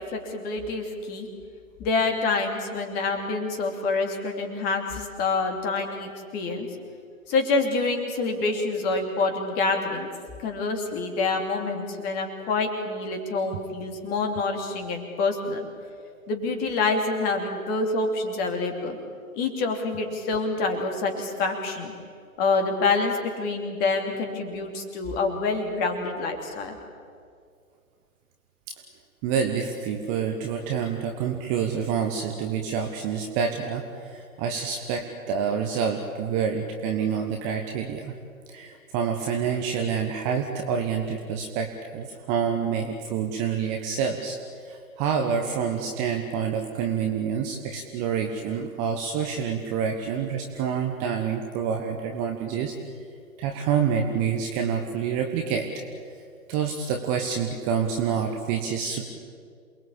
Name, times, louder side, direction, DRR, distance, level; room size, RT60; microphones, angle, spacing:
voice 1, 0.1-1.3 1.8-6.7 7.3-10.1 10.4-15.7 16.3-19.0 19.3-21.9 22.4-26.7, left 3 dB, 20° left, 4 dB, 2.9 m, -27 dB
voice 2, 29.2-38.1 38.5-44.4 44.6-52.7 53.4-55.7 56.5-59.1, right 7 dB, 15° right, 3 dB, 1.2 m, -27 dB
28.0 x 20.5 x 8.6 m, 2.2 s
figure-of-eight pair, 130°, 43 cm